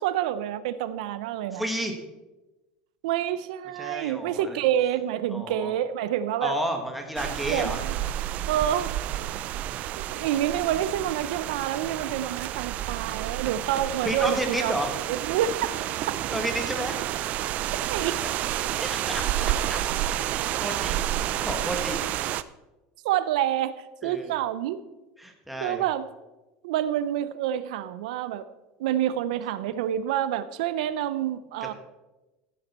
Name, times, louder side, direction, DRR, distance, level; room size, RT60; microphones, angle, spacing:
voice 1, 0.0-1.6 3.0-6.5 7.5-7.8 8.5-8.9 10.1-14.7 15.2-15.6 17.9-18.2 23.0-23.7 24.0-24.8 25.6-26.0 26.6-28.5 28.8-31.7, right 11 dB, 85° right, 14 dB, 0.6 m, -27 dB
voice 2, 1.5-1.9 3.8-4.6 5.3-5.7 6.4-7.8 14.0-14.9 16.3-17.0 18.8-19.8 20.1-21.1 21.4-22.0 24.0-24.3 25.2-25.8, right 1 dB, ahead, 3 dB, 1.4 m, -31 dB
sound 1, 7.2-22.4, right 12 dB, 40° right, 0.4 m, -30 dB
15.0 x 7.6 x 4.2 m, 1.1 s
cardioid pair, 160°, 4 cm